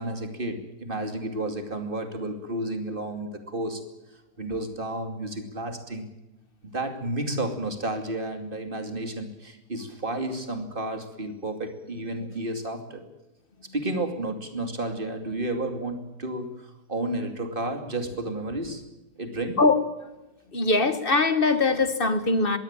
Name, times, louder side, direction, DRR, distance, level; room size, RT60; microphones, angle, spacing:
voice 1, 0.0-3.9 4.4-6.1 6.6-13.0 13.7-18.8 19.2-19.6, right 1 dB, 30° right, 6 dB, 2.8 m, -31 dB
voice 2, 20.5-22.6, left 3 dB, 35° left, 11 dB, 1.7 m, -21 dB
22.0 x 16.5 x 8.9 m, 1.0 s
omnidirectional pair, 1.8 m